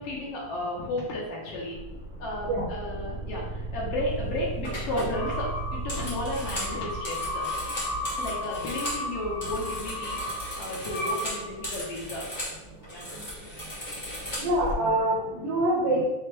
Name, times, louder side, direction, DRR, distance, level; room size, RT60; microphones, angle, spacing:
voice 1, 0.0-1.8 2.2-7.4 8.2-12.3 12.9-13.3, left 1 dB, 70° left, -3 dB, 1.6 m, -33 dB
sound 1, 1.7-7.9, right 3 dB, 55° right, 0.8 m, -36 dB
sound 2, 4.0-4.2 4.6-9.0 9.3-12.6 12.8-14.7, equal, 50° left, 0.5 m, -37 dB
sound 3, 5.1-11.9, left 1 dB, 85° left, 2.7 m, -34 dB
voice 2, 14.4-16.0, right 1 dB, 75° right, -4 dB, 1.6 m, -25 dB
5.9 x 2.2 x 3.3 m, 1.0 s
omnidirectional pair, 3.5 m